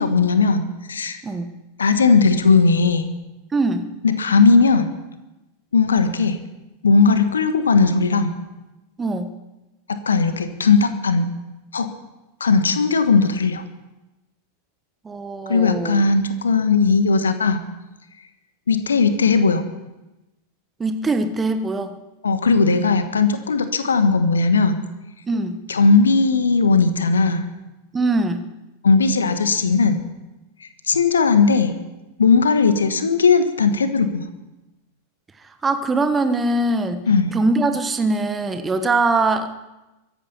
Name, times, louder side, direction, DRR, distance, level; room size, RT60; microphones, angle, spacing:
voice 1, 0.0-1.2 1.8-3.1 4.0-4.9 5.7-6.4 6.8-8.3 9.9-11.3 11.7-11.9 12.4-13.6 15.5-17.6 18.7-19.6 22.2-24.8 25.7-27.5 28.8-30.0 30.9-31.7 32.2-34.2 37.1-37.3, left 4 dB, 70° left, 10 dB, 1.5 m, -17 dB
voice 2, 3.5-3.9 9.0-9.3 15.0-16.0 20.8-22.0 25.3-25.6 27.9-28.4 35.6-39.5, right 2 dB, 15° right, 8 dB, 1.3 m, -22 dB
23.0 x 10.5 x 5.6 m, 1.0 s
figure-of-eight pair, 90°, 0 cm